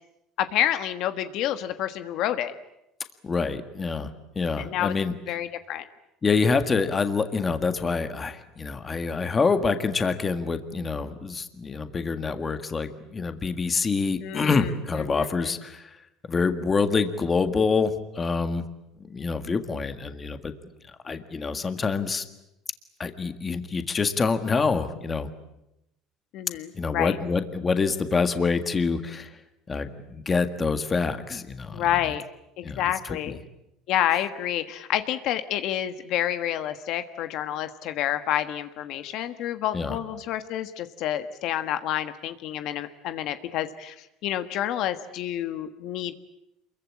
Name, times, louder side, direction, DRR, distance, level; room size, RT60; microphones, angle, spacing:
voice 1, 0.4-2.5 4.6-4.9 5.3-5.9 14.2-14.7 15.1-15.5 26.3-27.2 31.7-32.2 32.6-33.4 33.9-43.9 44.2-46.1, left 11 dB, 55° left, 10 dB, 1.4 m, -28 dB
voice 2, 3.2-5.1 6.2-16.0 16.3-18.6 19.0-20.5 21.0-22.2 23.0-25.3 26.7-29.3 29.7-32.1 32.6-33.2 39.7-40.0, left 4 dB, 20° left, 9 dB, 1.7 m, -26 dB
27.5 x 22.5 x 8.7 m, 0.87 s
cardioid pair, 145°, 0 cm